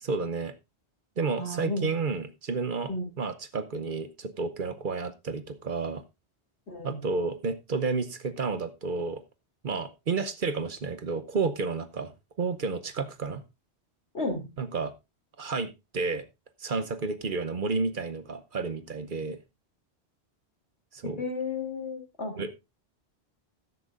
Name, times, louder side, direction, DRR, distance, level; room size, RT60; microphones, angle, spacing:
voice 1, 0.0-0.5 1.2-2.9 3.2-6.0 6.8-9.2 9.6-12.1 12.4-13.4 14.6-14.9 15.4-16.2 16.6-19.4 20.9-21.2 22.4-22.5, right 4 dB, 50° right, 0.9 m, -31 dB
voice 2, 1.4-1.9 2.9-3.0 6.7-7.0 14.1-14.5 21.2-22.3, left 2 dB, 80° left, 3.2 m, -32 dB
14.0 x 10.5 x 2.5 m
omnidirectional pair, 1.1 m